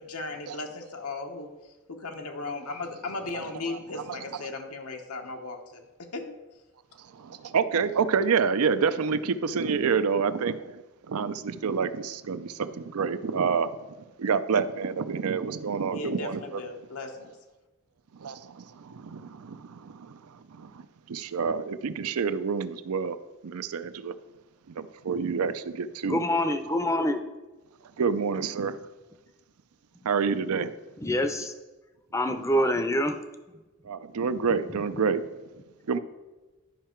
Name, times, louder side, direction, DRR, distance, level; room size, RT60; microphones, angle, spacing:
voice 1, 0.0-1.5 1.9-5.8 6.1-6.3 15.9-17.3, left 3 dB, 85° left, 3 dB, 1.0 m, -36 dB
voice 2, 3.0-4.4 7.1-10.8 11.1-13.7 14.2-16.6 18.2-23.2 23.4-24.1 24.7-26.3 26.6-26.8 28.0-28.8 30.0-30.7 31.3-31.5 32.5-32.7 33.9-35.3 35.9-36.0, right 5 dB, 85° right, 13 dB, 0.5 m, -28 dB
voice 3, 26.1-27.2 31.0-31.5 32.1-33.2 34.7-34.8, left 1 dB, 15° left, 8 dB, 0.5 m, -26 dB
11.0 x 5.6 x 4.4 m, 1.1 s
head